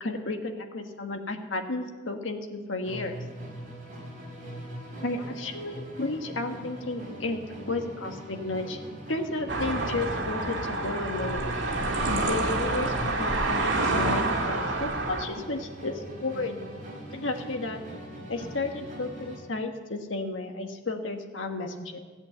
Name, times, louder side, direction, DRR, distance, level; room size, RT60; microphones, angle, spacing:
voice 1, 0.0-3.2 5.0-7.4 7.7-8.8 9.1-11.5 12.0-16.6 17.1-17.8 18.3-22.0, left 2 dB, 85° left, 4 dB, 1.4 m, -33 dB
Musical instrument, 2.8-19.5, equal, 45° right, 4.0 m, -41 dB
sound 1, 9.5-15.2, right 2 dB, 75° right, 1.9 m, -28 dB
15.0 x 8.1 x 7.8 m, 1.4 s
head